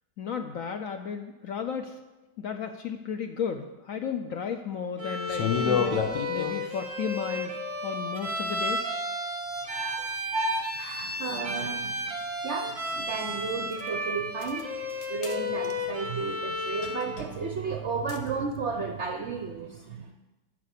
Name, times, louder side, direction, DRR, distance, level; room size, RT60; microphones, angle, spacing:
voice 1, 0.2-2.0 2.4-6.0 6.3-7.5 7.8-8.9, left 7 dB, 70° left, 7 dB, 0.8 m, -34 dB
Bowed string instrument, 5.0-17.1, left 1 dB, 25° right, 0.9 m, -33 dB
sound 1, 5.3-6.8 10.6-10.7 11.6-11.7 13.7-13.9 14.4-14.6 14.9-15.4 15.6-15.9 16.8-17.3 18.1-18.3, left 6 dB, 90° left, 1.6 m, -30 dB
voice 2, 9.6-12.1 12.4-14.7 15.1-20.1, right 4 dB, 60° right, 4 dB, 0.7 m, -33 dB
9.7 x 6.1 x 8.2 m, 1.1 s
omnidirectional pair, 1.9 m